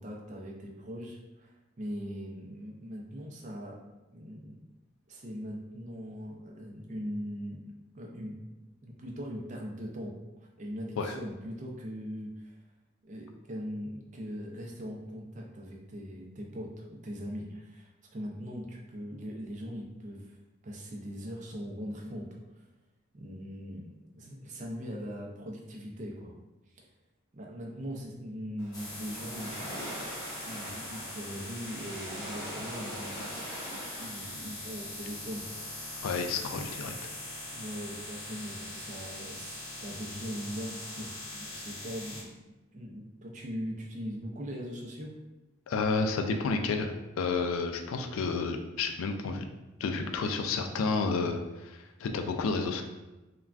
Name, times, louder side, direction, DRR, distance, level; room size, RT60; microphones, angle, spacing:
voice 1, 0.0-3.8 4.1-4.6 5.1-7.6 7.9-8.4 8.8-10.1 10.6-12.5 13.0-20.4 20.6-22.3 22.6-22.7 23.1-26.3 26.7-26.9 27.3-30.0 30.4-35.4 35.8-35.9 37.5-45.1, equal, 35° right, -1 dB, 0.4 m, -40 dB
Waves surf, 28.6-35.4, equal, 10° right, 0.9 m, -43 dB
sound 1, 28.7-42.2, left 1 dB, 20° left, 0.7 m, -42 dB
voice 2, 36.0-36.9 45.7-49.5 49.8-52.8, left 4 dB, 85° left, 5 dB, 0.3 m, -31 dB
3.3 x 2.2 x 2.4 m, 1.1 s
head